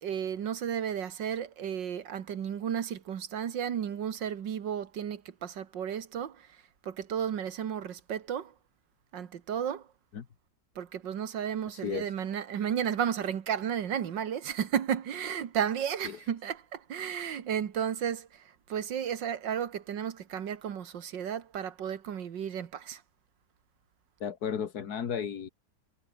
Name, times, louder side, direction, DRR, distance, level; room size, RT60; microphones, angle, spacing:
voice 1, 0.0-6.4 6.8-8.5 9.1-9.8 10.8-18.3 18.7-23.0, right 8 dB, 80° right, 2.1 m, -33 dB
voice 2, 11.7-12.1 16.0-16.3 24.2-25.5, left 7 dB, 60° left, 1.9 m, -34 dB
omnidirectional pair, 2.0 m